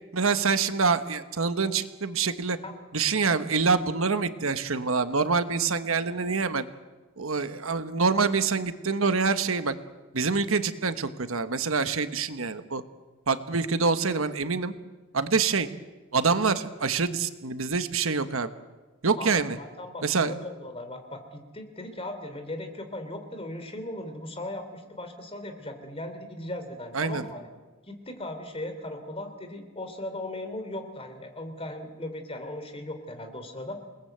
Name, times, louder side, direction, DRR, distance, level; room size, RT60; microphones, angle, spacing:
voice 1, 0.1-2.6 2.9-6.6 7.2-9.7 10.1-12.8 13.3-14.7 15.1-15.7 16.1-18.5 19.0-19.6 20.0-20.3 26.9-27.2, right 4 dB, 70° right, 10 dB, 1.3 m, -26 dB
voice 2, 5.8-6.1 19.2-27.5 27.9-33.8, left 1 dB, 25° left, 7 dB, 3.4 m, -38 dB
28.5 x 19.5 x 8.1 m, 1.2 s
head